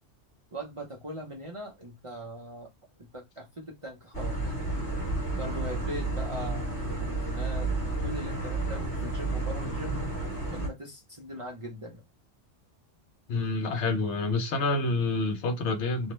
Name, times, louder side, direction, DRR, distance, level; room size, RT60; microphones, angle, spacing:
voice 1, 0.5-2.7 3.0-4.5 5.4-10.0 10.5-12.0, equal, 35° right, 0.6 m, -40 dB
sound 1, 4.1-10.7, right 2 dB, 40° left, 1.3 m, -31 dB
voice 2, 13.3-16.1, left 3 dB, 75° left, 0.9 m, -28 dB
2.6 x 2.1 x 3.0 m
omnidirectional pair, 1.2 m